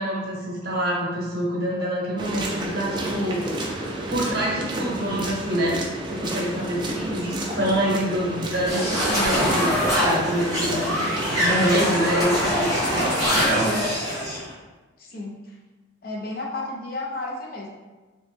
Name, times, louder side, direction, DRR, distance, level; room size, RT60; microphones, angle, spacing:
voice 1, 0.0-3.4 4.1-5.8 6.1-13.9, equal, 50° right, -4 dB, 0.9 m, -26 dB
sound 1, 2.2-13.1, right 1 dB, 20° right, 0.4 m, -31 dB
voice 2, 6.9-7.6 15.0-15.6 16.0-17.7, left 2 dB, 45° left, -1 dB, 0.5 m, -33 dB
sound 2, 8.7-14.4, equal, 15° left, 1.1 m, -24 dB
3.0 x 3.0 x 3.3 m, 1.2 s
head